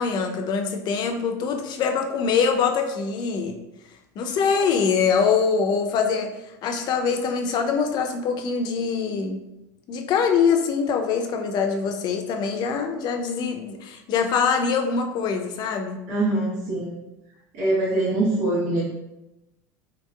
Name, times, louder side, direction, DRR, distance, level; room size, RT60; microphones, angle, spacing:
voice 1, 0.0-3.6 4.2-6.3 6.6-9.4 9.9-16.0, left 6 dB, 50° left, 5 dB, 0.5 m, -23 dB
voice 2, 16.1-17.0 17.5-18.8, right 2 dB, 75° right, -6 dB, 1.2 m, -23 dB
3.9 x 2.9 x 2.3 m, 0.96 s
hypercardioid pair, 95°, 9 cm